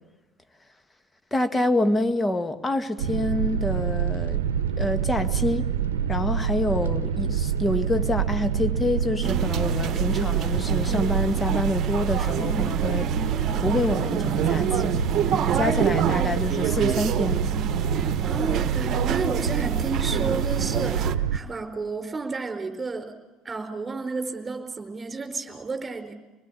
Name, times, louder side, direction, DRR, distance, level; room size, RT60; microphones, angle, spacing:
voice 1, 1.3-4.4 4.8-5.7 6.1-13.1 13.6-14.9 15.5-17.5, left 1 dB, 15° left, 1.8 m, -27 dB
sound 1, 3.0-21.4, right 7 dB, 80° right, 0.9 m, -26 dB
sound 2, 9.2-21.1, right 8 dB, 45° right, 1.1 m, -28 dB
voice 2, 18.2-23.1 23.4-26.1, right 4 dB, 25° right, 4.6 m, -32 dB
25.5 x 20.0 x 8.8 m
hypercardioid pair, 65°, 0 cm